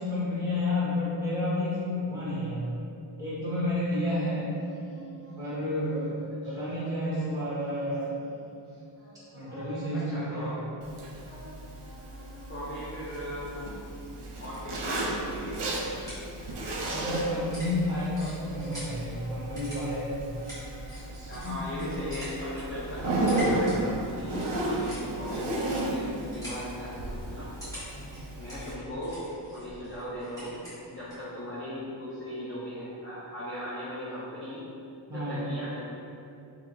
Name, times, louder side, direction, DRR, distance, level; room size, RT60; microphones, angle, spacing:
voice 1, 0.0-2.7 3.2-4.5 5.4-6.1 6.4-8.2 9.3-10.5 16.8-20.3 21.1-22.0 28.0-28.3 35.1-35.5, left 1 dB, 10° right, -12 dB, 1.4 m, -31 dB
sound 1, 4.4-14.0 14.4-16.3 16.6-20.1 20.3-21.3 21.6-22.6, equal, 70° left, 1.5 m, -51 dB
voice 2, 9.9-10.6 12.5-14.0 14.4-15.9 21.1-26.1 26.3-27.5 28.4-34.7 35.1-35.8, equal, 30° left, -9 dB, 0.5 m, -38 dB
Zipper (clothing), 10.8-28.7, right 1 dB, 70° right, 0.7 m, -34 dB
sound 2, 15.8-31.3, left 1 dB, 10° left, 1.2 m, -46 dB
4.8 x 2.8 x 2.6 m, 2.6 s
wide cardioid pair, 165°, 44 cm